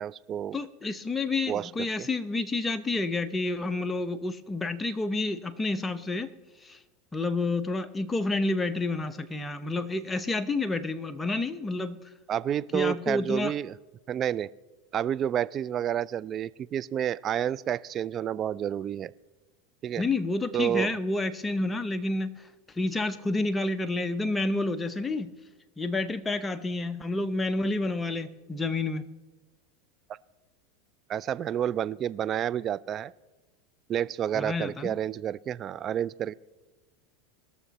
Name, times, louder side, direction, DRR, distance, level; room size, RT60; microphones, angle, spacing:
voice 1, 0.0-0.6 1.5-1.7 2.0-2.1 12.3-13.7 14.1-14.5 14.9-19.1 19.8-20.0 20.5-21.0 31.1-33.1 33.9-36.3, right 10 dB, 40° right, 19 dB, 0.3 m, -29 dB
voice 2, 0.5-6.3 6.6-6.8 7.1-12.0 12.7-13.5 20.0-22.5 22.8-25.3 25.8-29.1 34.3-35.0, left 2 dB, 15° left, 9 dB, 0.8 m, -29 dB
20.0 x 6.8 x 4.2 m, 1.2 s
hypercardioid pair, 95°, 0 cm